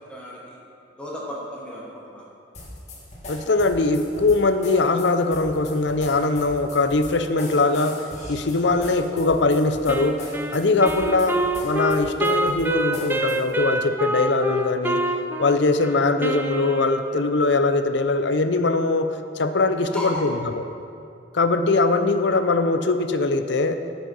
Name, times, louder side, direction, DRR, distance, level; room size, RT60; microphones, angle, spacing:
voice 1, 0.1-0.6 1.0-2.2 19.9-20.3, equal, 5° left, -5 dB, 1.4 m, -34 dB
sound 1, 2.5-13.6, left 1 dB, 35° left, 1.7 m, -39 dB
voice 2, 3.3-8.0 8.3-10.3 10.5-15.0 15.4-20.6 21.3-23.8, left 3 dB, 60° left, 9 dB, 0.6 m, -21 dB
Wind instrument woodwind instrument, 9.9-17.4, right 1 dB, 10° right, 0.4 m, -27 dB
12.5 x 6.6 x 5.4 m, 2.5 s
head